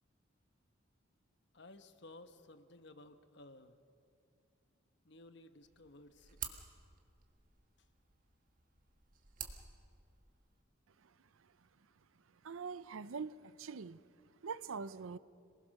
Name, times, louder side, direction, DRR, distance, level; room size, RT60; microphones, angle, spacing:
voice 1, 1.5-3.8 5.0-6.6 7.8-7.9, left 2 dB, 55° left, 10 dB, 1.1 m, -57 dB
sound 1, 5.6-10.6, right 8 dB, 40° right, 1.6 m, -51 dB
voice 2, 12.4-14.0 14.4-15.2, right 5 dB, 75° right, 17 dB, 0.6 m, -43 dB
27.0 x 20.0 x 6.5 m, 2.4 s
head